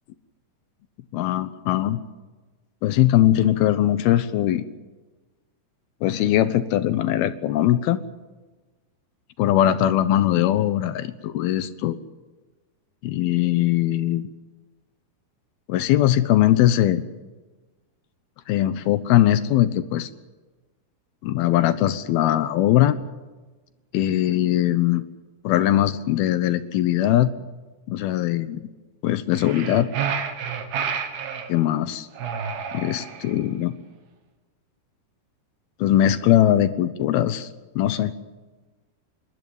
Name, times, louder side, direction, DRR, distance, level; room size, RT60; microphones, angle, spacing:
voice 1, 1.1-2.0 2.8-4.6 6.0-8.0 9.4-12.0 13.0-14.3 15.7-17.0 18.5-20.1 21.2-23.0 23.9-25.0 25.4-27.3 27.9-28.6 29.0-29.9 31.5-32.1 32.7-33.7 35.8-37.5 37.8-38.1, left 12 dB, 75° left, 12 dB, 2.6 m, -20 dB
sound 1, 29.3-31.5 32.2-33.4, right 7 dB, 70° right, 3.6 m, -29 dB
26.5 x 12.5 x 9.4 m, 1.2 s
omnidirectional pair, 4.6 m